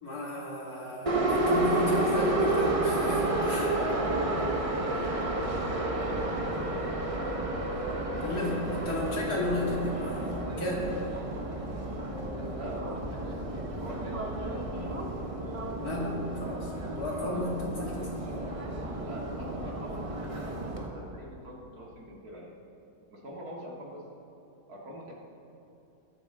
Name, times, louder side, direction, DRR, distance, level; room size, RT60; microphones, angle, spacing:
voice 1, 0.0-3.7 8.2-10.9 15.8-18.2, left 2 dB, 55° left, -4 dB, 2.8 m, -33 dB
Subway metro underground, 1.1-20.9, right 2 dB, 25° right, 0.8 m, -31 dB
voice 2, 3.6-6.6 6.9-7.1 12.3-14.8 16.7-17.0 17.3-17.6 19.0-22.5 23.1-24.0 24.7-25.1, right 1 dB, 55° right, -3 dB, 2.5 m, -44 dB
20.5 x 8.9 x 3.7 m, 2.8 s
omnidirectional pair, 1.9 m